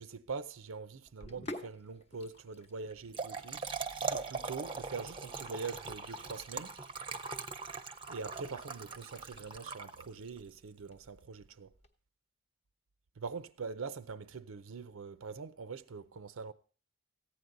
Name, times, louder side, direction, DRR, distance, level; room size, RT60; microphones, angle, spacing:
voice 1, 0.0-3.6 4.1-6.8 8.1-11.7 13.2-16.5, right 4 dB, 80° right, 0.6 m, -43 dB
Sink (filling or washing), 1.1-11.9, left 1 dB, 30° left, 0.9 m, -53 dB
Trickle dribble / Fill (with liquid), 2.9-10.4, right 4 dB, 25° right, 0.7 m, -41 dB
15.0 x 9.4 x 3.8 m
head